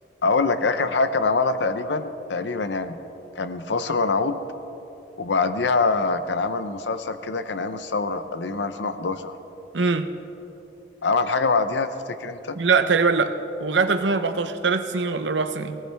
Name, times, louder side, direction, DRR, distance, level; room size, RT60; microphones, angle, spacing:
voice 1, 0.2-3.0 3.3-4.4 5.2-9.3 11.0-12.6, left 3 dB, 75° left, 10 dB, 0.7 m, -24 dB
voice 2, 9.7-10.1 12.5-13.3 13.6-15.8, right 4 dB, 80° right, 9 dB, 0.8 m, -22 dB
19.0 x 18.5 x 3.4 m, 3.0 s
head